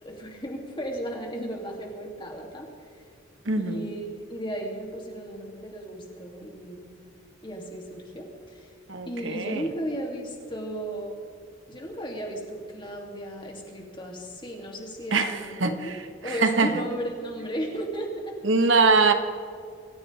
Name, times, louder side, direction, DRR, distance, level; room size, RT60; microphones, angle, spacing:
voice 1, 0.0-2.7 2.9-3.0 3.6-6.9 7.4-8.7 9.1-11.2 11.7-16.0 16.2-18.4, right 1 dB, 25° left, 0 dB, 2.5 m, -35 dB
voice 2, 3.4-3.8 8.9-9.6 15.1-16.0 16.3-16.7 18.4-19.1, right 4 dB, 70° right, 7 dB, 1.3 m, -23 dB
25.0 x 14.5 x 3.4 m, 2.4 s
head